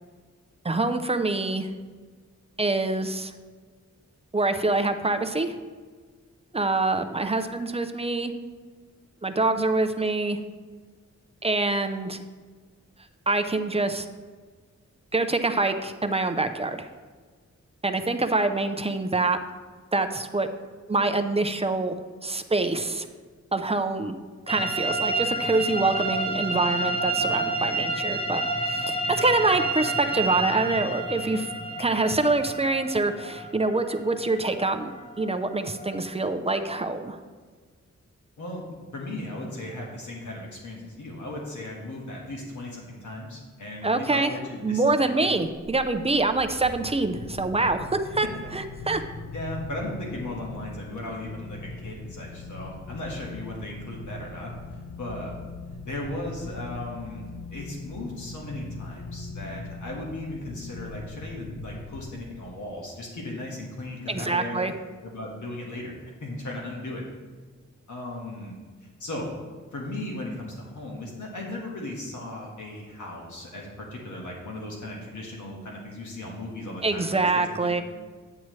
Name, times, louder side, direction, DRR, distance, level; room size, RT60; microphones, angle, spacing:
voice 1, 0.6-1.7 2.6-3.3 4.3-5.5 6.5-8.3 9.2-10.4 11.4-12.2 13.3-14.1 15.1-16.9 17.8-19.4 19.9-20.5 20.9-21.9 22.2-23.1 23.5-24.2 24.5-28.4 28.7-31.5 31.8-34.9 35.2-37.2 43.8-44.3 44.6-47.9 48.1-48.3 48.5-49.0 64.1-64.7 76.8-77.8, right 3 dB, 20° right, 7 dB, 0.5 m, -25 dB
sound 1, 24.5-36.0, right 2 dB, 20° left, 0.9 m, -30 dB
voice 2, 38.4-45.3 49.3-54.5 55.0-55.3 55.8-57.2 57.5-64.6 65.0-65.9 66.2-67.0 67.9-68.5 69.0-69.3 69.7-77.8, left 1 dB, 85° left, -2 dB, 1.5 m, -36 dB
sound 2, 45.6-62.7, left 3 dB, 70° left, 0.6 m, -40 dB
9.4 x 8.7 x 3.1 m, 1.5 s
wide cardioid pair, 135°, 29 cm